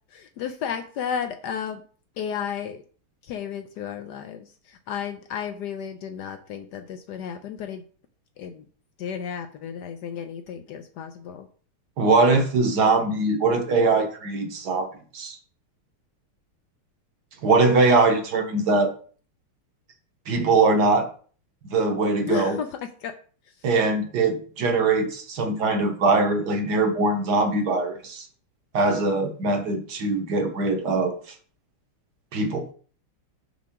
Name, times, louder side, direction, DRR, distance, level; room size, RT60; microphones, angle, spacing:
voice 1, 0.1-1.8 2.2-2.8 3.2-7.8 8.4-8.6 9.0-11.5 22.3-22.7 23.0-23.1, left 7 dB, 75° left, 8 dB, 0.9 m, -33 dB
voice 2, 12.0-14.9 15.1-15.4 17.4-18.9 20.3-21.1 21.6-22.6 23.6-28.2 28.7-31.1 32.3-32.7, right 3 dB, 60° right, 5 dB, 1.4 m, -22 dB
6.1 x 5.7 x 3.6 m, 0.43 s
omnidirectional pair, 2.4 m